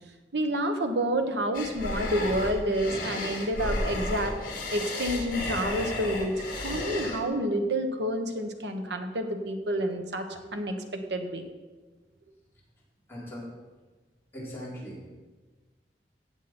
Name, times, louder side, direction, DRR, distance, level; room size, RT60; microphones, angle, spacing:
voice 1, 0.3-10.8 11.1-11.4, right 1 dB, 85° right, 5 dB, 1.4 m, -29 dB
sound 1, 1.5-7.2, left 2 dB, 50° left, 2.5 m, -33 dB
voice 2, 13.1-13.6 14.3-15.1, equal, 15° left, -6 dB, 3.7 m, -40 dB
15.5 x 8.3 x 4.5 m, 1.3 s
head